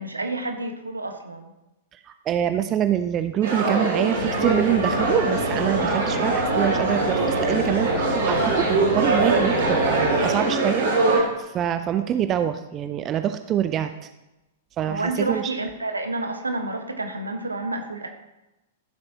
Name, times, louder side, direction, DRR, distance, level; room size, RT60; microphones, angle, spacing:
voice 1, 0.0-1.5 14.8-18.1, right 2 dB, 80° right, 5 dB, 1.2 m, -29 dB
voice 2, 2.3-13.9 14.8-15.5, right 10 dB, 25° right, 9 dB, 0.5 m, -25 dB
sound 1, 3.4-11.2, right 3 dB, 60° right, 3.9 m, -23 dB
sound 2, 4.1-10.4, left 1 dB, 75° left, 3.4 m, -30 dB
14.5 x 7.7 x 2.8 m, 0.97 s
figure-of-eight pair, 100°, 0 cm